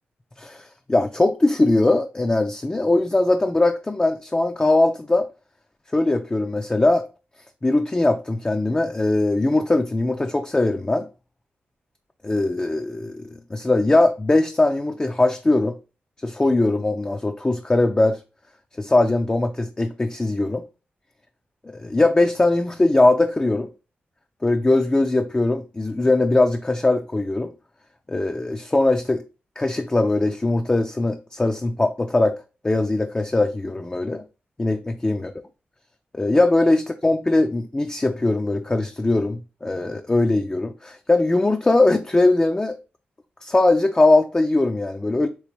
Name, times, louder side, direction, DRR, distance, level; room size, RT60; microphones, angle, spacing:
voice 1, 0.4-5.3 5.9-7.1 7.6-11.1 12.2-15.8 16.2-18.2 18.8-20.6 21.6-23.7 24.4-27.5 28.1-29.2 29.6-32.4 32.6-34.2 34.6-35.3 36.1-42.8 43.4-45.3, left 2 dB, 20° left, 0.3 m, -20 dB
3.1 x 3.1 x 2.9 m
cardioid pair, 45°, 4 cm